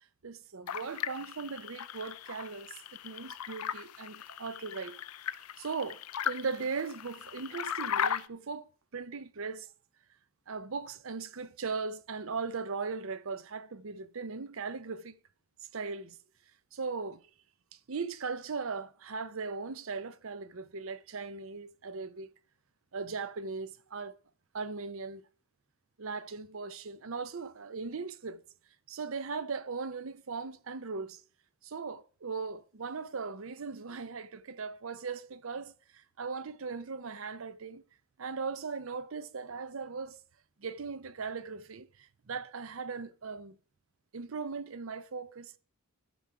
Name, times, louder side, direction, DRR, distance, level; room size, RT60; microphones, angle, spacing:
voice 1, 0.2-5.0 5.6-6.0 6.2-9.7 10.5-15.2 15.7-16.2 16.7-17.2 17.9-22.3 22.9-24.1 24.5-25.2 26.0-28.4 28.9-31.2 31.6-37.8 38.2-40.2 40.6-43.6 44.1-45.6, right 4 dB, 70° right, 0.7 m, -38 dB
sound 1, 0.7-8.3, left 9 dB, 90° left, 0.5 m, -37 dB
13.0 x 4.8 x 5.7 m
head